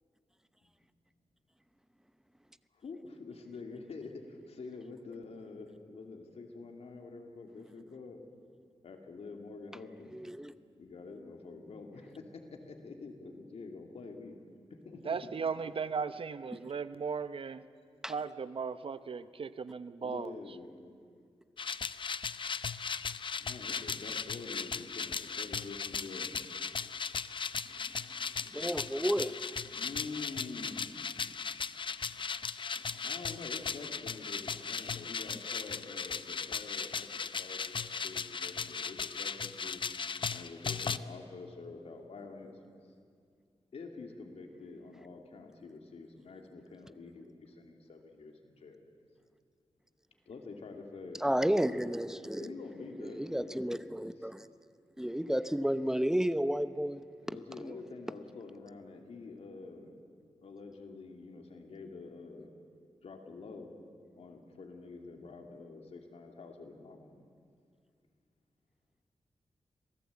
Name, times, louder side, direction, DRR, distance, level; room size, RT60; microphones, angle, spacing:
voice 1, 2.7-8.2 8.8-10.1 10.7-14.4 14.8-15.2 20.0-20.7 23.4-26.3 29.7-30.9 32.2-32.5 32.7-39.8 40.3-42.5 43.7-48.8 50.3-51.2 52.4-53.8 54.2-54.3 57.2-59.9 60.4-62.5 63.0-63.7 64.2-67.3, left 3 dB, 80° left, 3 dB, 2.9 m, -47 dB
voice 2, 10.1-10.5 18.0-18.1 28.5-29.3 51.2-52.5 53.0-54.5 55.0-57.0 57.6-57.8, equal, 5° right, 12 dB, 0.8 m, -32 dB
voice 3, 15.0-17.6 18.1-20.3, right 5 dB, 60° right, 13 dB, 0.8 m, -36 dB
sound 1, 21.6-41.0, left 5 dB, 50° left, 0.6 m, -37 dB
26.5 x 18.0 x 8.5 m, 2.3 s
wide cardioid pair, 110°, 11 cm